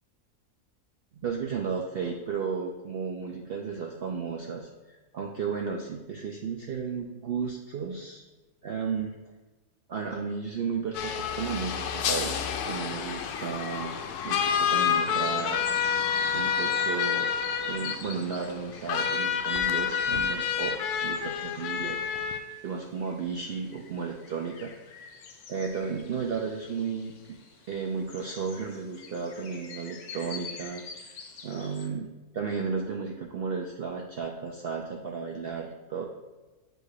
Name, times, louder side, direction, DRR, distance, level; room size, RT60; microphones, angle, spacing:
voice 1, 1.1-8.2 8.6-9.2 9.9-14.0 14.2-15.6 15.9-16.1 16.3-17.3 17.7-22.0 22.6-24.7 25.5-27.1 27.7-31.1 31.4-32.1 32.3-36.0, right 5 dB, 70° right, 1 dB, 0.5 m, -34 dB
sound 1, 10.9-22.4, left 7 dB, 85° left, 1.1 m, -29 dB
sound 2, 12.9-31.9, left 5 dB, 60° left, 0.9 m, -46 dB
7.8 x 2.6 x 4.8 m, 1.2 s
omnidirectional pair, 1.6 m